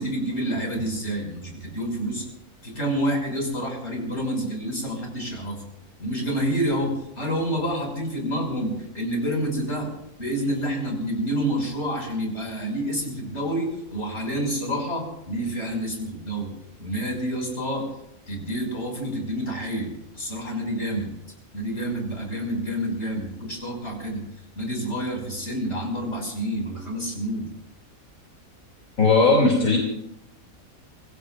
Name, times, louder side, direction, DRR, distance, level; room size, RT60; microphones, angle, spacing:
voice 1, 0.0-2.2 2.6-5.6 6.0-9.9 10.2-16.5 16.8-17.8 18.3-21.1 21.5-24.2 24.6-27.5, right 1 dB, 50° left, 0 dB, 6.5 m, -28 dB
voice 2, 29.0-29.8, left 3 dB, 70° left, -2 dB, 3.4 m, -17 dB
26.5 x 21.0 x 2.6 m, 0.79 s
omnidirectional pair, 1.5 m